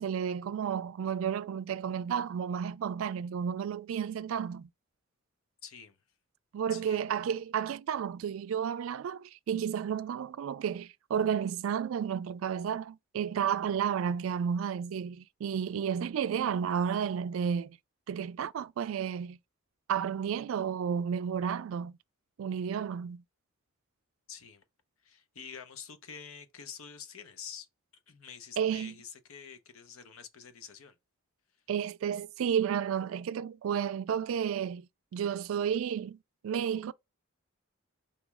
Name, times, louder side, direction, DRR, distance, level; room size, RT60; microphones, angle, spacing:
voice 1, 0.0-4.7 6.5-17.8 18.1-19.4 19.9-22.0 22.4-23.2 28.6-28.9 31.7-36.2 36.4-36.9, right 8 dB, 70° right, 0.3 m, -32 dB
voice 2, 5.6-6.0 6.7-7.0 24.3-24.6 25.0-27.7 28.1-30.9, left 7 dB, 80° left, 0.7 m, -47 dB
4.2 x 3.1 x 3.4 m
head